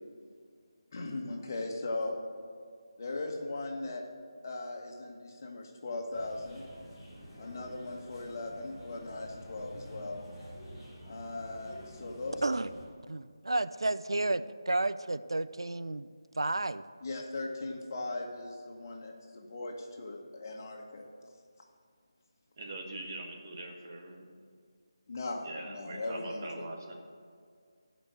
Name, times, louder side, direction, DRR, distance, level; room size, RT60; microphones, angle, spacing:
voice 1, 0.9-2.1 3.0-4.0 4.4-6.6 7.4-10.2 11.1-12.4 17.0-21.0 25.1-26.6, left 2 dB, 40° left, 1 dB, 1.6 m, -38 dB
sound 1, 6.1-12.8, equal, 5° left, 2.7 m, -49 dB
voice 2, 13.1-16.1 16.4-16.8, right 2 dB, 75° right, 14 dB, 0.5 m, -31 dB
voice 3, 22.6-24.3 25.4-26.9, right 2 dB, 40° right, 1 dB, 1.7 m, -42 dB
12.0 x 5.3 x 7.7 m, 2.1 s
figure-of-eight pair, 160°, 3 cm